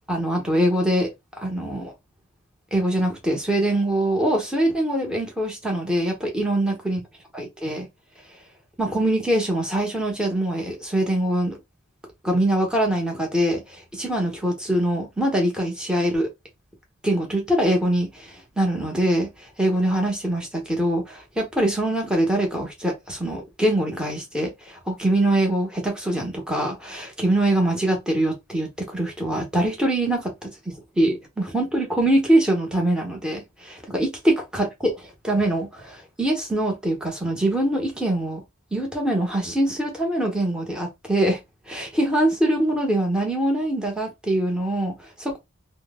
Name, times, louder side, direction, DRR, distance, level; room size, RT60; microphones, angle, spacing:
voice 1, 0.1-1.1 1.4-1.9 2.7-7.0 7.3-7.9 8.8-11.6 12.2-16.3 17.0-38.4 38.7-41.4 41.7-45.4, right 1 dB, 5° right, 0.9 m, -23 dB
2.9 x 2.0 x 3.5 m
head